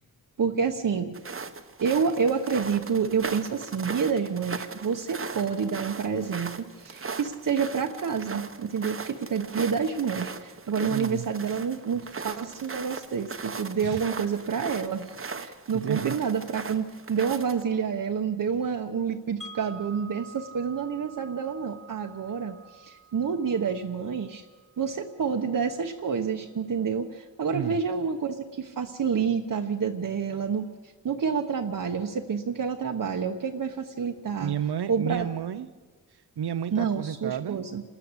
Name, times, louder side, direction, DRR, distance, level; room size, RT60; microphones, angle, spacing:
voice 1, 0.4-1.1 1.8-24.4 24.8-30.7 31.0-34.5 34.9-35.3 36.7-37.8, right 6 dB, 55° right, 3 dB, 1.1 m, -28 dB
sound 1, 1.1-17.6, right 4 dB, 35° right, 1.0 m, -38 dB
voice 2, 10.9-11.3 13.8-14.0 15.7-16.2 27.5-27.8 34.3-35.7 36.4-37.6, right 9 dB, 80° right, 15 dB, 0.9 m, -31 dB
Wind chime, 19.4-25.4, right 4 dB, ahead, 1.6 m, -48 dB
28.0 x 13.0 x 8.1 m, 1.4 s
wide cardioid pair, 155°, 39 cm